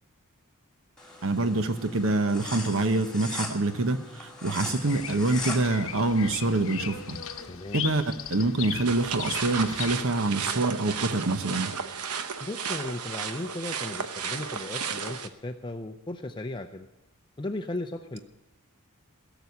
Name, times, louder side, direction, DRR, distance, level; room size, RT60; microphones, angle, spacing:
sound 1, 1.0-7.5, left 2 dB, 5° left, 2.4 m, -40 dB
voice 1, 1.2-7.2 7.7-8.0 8.3-11.7, right 2 dB, 60° right, 9 dB, 1.0 m, -26 dB
Bird vocalization bird call bird song, 4.8-9.9, left 9 dB, 65° left, 0.9 m, -37 dB
voice 2, 7.5-7.8 12.4-16.9 17.4-18.2, left 2 dB, 20° left, 6 dB, 0.5 m, -36 dB
sound 2, 8.9-15.3, right 6 dB, 85° right, 0.9 m, -33 dB
17.0 x 7.0 x 9.5 m, 0.99 s
head